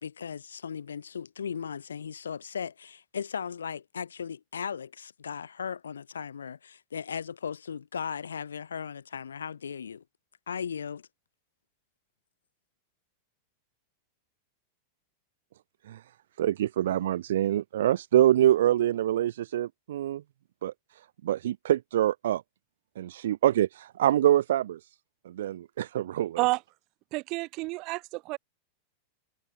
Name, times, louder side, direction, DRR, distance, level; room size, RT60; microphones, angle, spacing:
voice 1, 0.0-10.0 10.5-11.1, left 7 dB, 70° left, 2.1 m, -37 dB
voice 2, 16.4-20.2 20.6-20.7 21.2-22.4 23.0-24.8 25.2-26.4, right 12 dB, 60° right, 1.3 m, -25 dB
voice 3, 27.1-28.4, right 23 dB, 40° right, 0.8 m, -29 dB
figure-of-eight pair, 90°, 0 cm